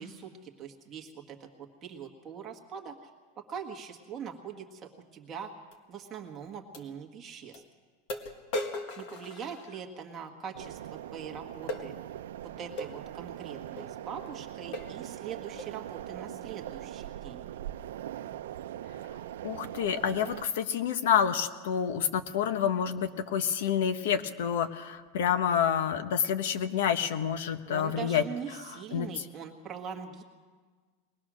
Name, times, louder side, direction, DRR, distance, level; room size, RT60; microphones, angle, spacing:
voice 1, 0.0-3.1 3.4-5.5 5.9-7.6 9.0-11.9 12.6-17.5 27.7-30.2, right 7 dB, 20° right, 1 dB, 1.6 m, -42 dB
sound 1, 5.7-5.8 6.7-6.9 7.5-7.6 8.1-10.0 11.7-11.9 12.8-13.0 13.8-13.9 14.3-14.4 14.7-15.0 15.6-15.8, left 1 dB, 45° left, 1.6 m, -37 dB
sound 2, 10.5-20.5, right 12 dB, 85° right, 0.6 m, -41 dB
voice 2, 19.4-28.2 28.7-29.1, left 8 dB, 65° left, 11 dB, 1.0 m, -28 dB
22.0 x 19.0 x 6.3 m, 1.5 s
supercardioid pair, 175°, 0 cm